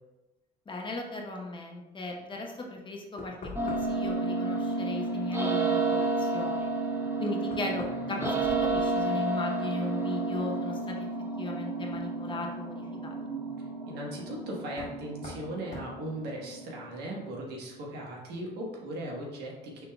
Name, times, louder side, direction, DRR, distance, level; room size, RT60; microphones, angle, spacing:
voice 1, 0.7-3.3 3.6-6.7 7.2-11.0 11.4-13.2, left 2 dB, 30° left, 1 dB, 0.9 m, -37 dB
Knock, 3.2-4.1 6.6-6.7 7.4-9.3 9.6-10.2 11.9-12.0 14.7-15.0 15.2-15.5 15.7-15.9, left 2 dB, 50° left, 1.5 m, -43 dB
sound 1, 3.5-17.5, right 3 dB, 15° right, 0.8 m, -31 dB
voice 2, 13.9-19.9, right 1 dB, 75° right, -2 dB, 1.4 m, -38 dB
6.0 x 3.7 x 2.3 m, 1.0 s
cardioid pair, 110°, 17 cm